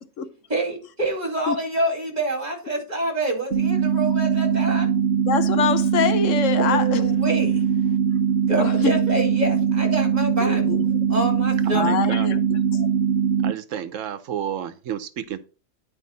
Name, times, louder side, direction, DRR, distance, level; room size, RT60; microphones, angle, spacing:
voice 1, 0.5-4.9 6.5-7.6 8.5-10.8 11.1-11.9, right 2 dB, 35° right, 2.6 m, -27 dB
sound 1, 3.5-13.5, right 7 dB, 55° right, 1.1 m, -21 dB
voice 2, 5.3-7.0 8.6-9.0 10.4-10.8 11.7-12.4 12.7-12.9, left 7 dB, 80° left, 1.2 m, -24 dB
voice 3, 11.6-12.3 13.4-15.4, right 9 dB, 85° right, 1.1 m, -31 dB
10.0 x 5.1 x 4.0 m
omnidirectional pair, 1.3 m